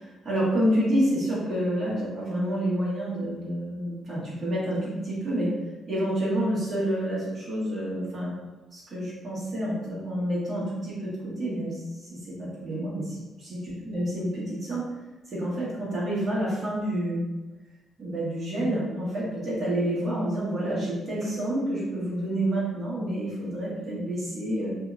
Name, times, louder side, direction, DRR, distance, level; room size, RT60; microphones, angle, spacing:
voice 1, 0.0-5.5 5.9-8.3 8.7-14.8 15.3-17.2 18.0-24.7, right 1 dB, 45° right, -8 dB, 1.5 m, -28 dB
2.8 x 2.7 x 2.4 m, 1.1 s
cardioid pair, 90°, 0 cm